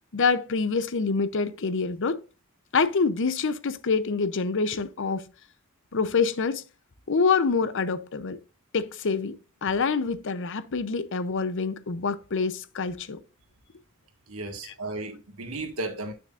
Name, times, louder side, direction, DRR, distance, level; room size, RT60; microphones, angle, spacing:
voice 1, 0.1-2.2 2.7-5.2 5.9-6.6 7.1-8.4 8.7-13.2, left 4 dB, 60° left, 0.7 m, -26 dB
voice 2, 14.3-16.1, right 2 dB, 80° right, 1.8 m, -34 dB
9.3 x 6.4 x 2.5 m
head